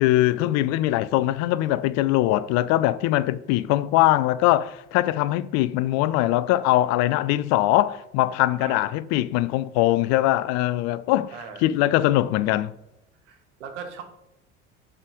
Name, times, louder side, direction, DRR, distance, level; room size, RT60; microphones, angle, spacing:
voice 1, 0.0-11.3 11.6-12.7, left 15 dB, 50° left, 0.4 m, -22 dB
voice 2, 8.6-8.9 11.3-11.6 13.3-14.0, right 6 dB, 75° right, 1.4 m, -38 dB
7.3 x 5.0 x 4.9 m
figure-of-eight pair, 65°, 35 cm